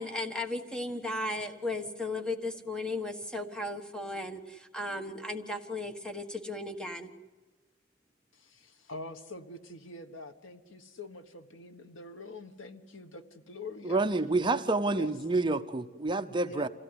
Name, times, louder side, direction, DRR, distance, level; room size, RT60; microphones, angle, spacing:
voice 1, 0.0-7.1, left 2 dB, 5° left, 7 dB, 1.4 m, -35 dB
voice 2, 8.3-14.0 14.4-14.6 14.9-15.1 16.4-16.7, left 2 dB, 80° left, 9 dB, 1.4 m, -45 dB
voice 3, 13.8-16.7, right 3 dB, 25° right, 9 dB, 0.7 m, -28 dB
26.5 x 16.5 x 9.8 m, 1.3 s
head